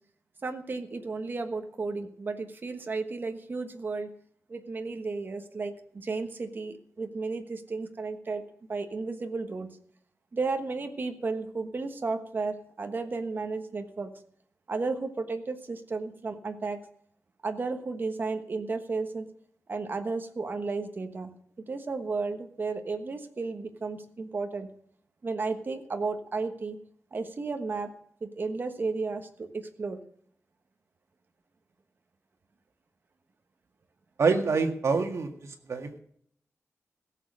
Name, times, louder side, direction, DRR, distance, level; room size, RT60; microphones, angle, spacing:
voice 1, 0.4-4.1 4.5-8.4 8.7-9.7 10.3-14.1 14.7-16.8 17.4-19.3 19.7-21.3 21.7-24.7 25.2-26.8 27.1-27.9 28.2-30.0, right 3 dB, 40° right, 6 dB, 1.3 m, -33 dB
voice 2, 34.2-35.3 35.7-35.9, right 4 dB, 60° right, 5 dB, 1.9 m, -25 dB
16.5 x 7.4 x 6.5 m, 0.65 s
wide cardioid pair, 175°, 5 cm